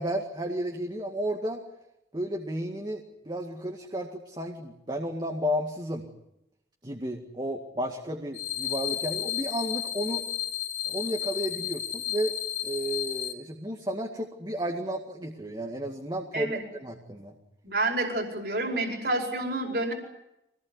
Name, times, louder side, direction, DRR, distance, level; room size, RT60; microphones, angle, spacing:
voice 1, 0.0-1.6 2.1-6.1 6.8-10.2 10.8-12.3 12.6-17.4, equal, 25° right, 2 dB, 2.1 m, -32 dB
sound 1, 8.3-13.3, left 11 dB, 50° left, 2.3 m, -32 dB
voice 2, 17.6-19.9, right 2 dB, 60° right, 2 dB, 5.1 m, -29 dB
25.0 x 19.0 x 9.7 m, 0.86 s
head